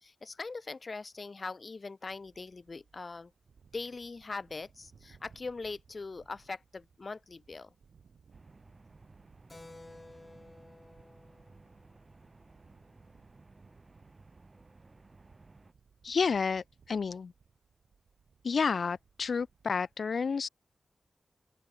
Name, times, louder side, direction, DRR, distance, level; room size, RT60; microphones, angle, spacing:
voice 1, 0.0-3.3 3.7-7.7, left 3 dB, 45° left, 2.3 m, -41 dB
sound 1, 2.0-20.0, right 6 dB, 90° right, 7.6 m, -64 dB
sound 2, 8.3-15.7, right 3 dB, 35° right, 5.7 m, -58 dB
Keyboard (musical), 9.5-13.6, left 2 dB, 25° left, 2.3 m, -55 dB
voice 2, 16.0-17.3 18.4-20.5, left 5 dB, 70° left, 0.6 m, -30 dB
open air
wide cardioid pair, 120°, 0 cm